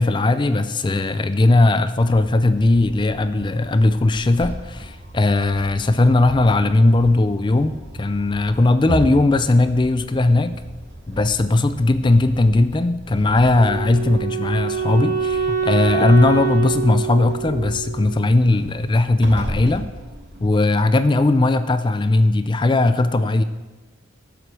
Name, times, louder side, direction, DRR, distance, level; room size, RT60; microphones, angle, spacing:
voice 1, 0.0-10.6 11.1-19.9 20.4-23.4, left 2 dB, 25° left, 11 dB, 0.4 m, -18 dB
sound 1, 1.9-20.6, right 1 dB, 60° right, 3.3 m, -36 dB
Wind instrument woodwind instrument, 13.5-18.6, right 6 dB, 15° right, 2.2 m, -25 dB
12.5 x 5.1 x 7.4 m, 1.2 s
head